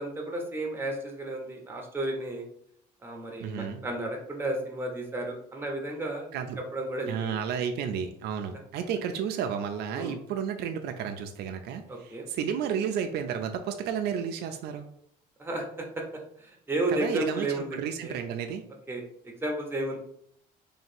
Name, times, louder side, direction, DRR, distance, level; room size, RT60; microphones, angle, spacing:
voice 1, 0.0-2.4 3.0-6.3 6.7-7.4 9.9-10.2 11.9-12.3 15.4-15.6 16.4-18.1 18.9-19.0 19.4-20.0, right 2 dB, 15° right, 1 dB, 1.0 m, -32 dB
voice 2, 3.4-3.8 6.3-6.6 7.1-14.9 16.9-18.6, right 7 dB, 75° right, 6 dB, 0.5 m, -32 dB
3.2 x 2.8 x 4.4 m, 0.68 s
cardioid pair, 110°, 17 cm